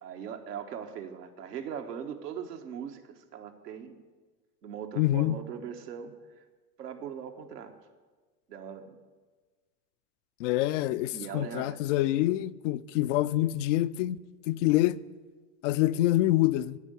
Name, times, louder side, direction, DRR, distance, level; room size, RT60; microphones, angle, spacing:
voice 1, 0.0-4.0 4.6-6.4 6.8-7.7 8.5-9.0 11.1-11.8, right 8 dB, 75° right, 1.3 m, -40 dB
voice 2, 5.0-5.4 10.4-14.2 14.5-15.0 15.6-16.8, left 15 dB, 55° left, 0.5 m, -26 dB
13.0 x 5.3 x 8.0 m
hypercardioid pair, 85°, 48 cm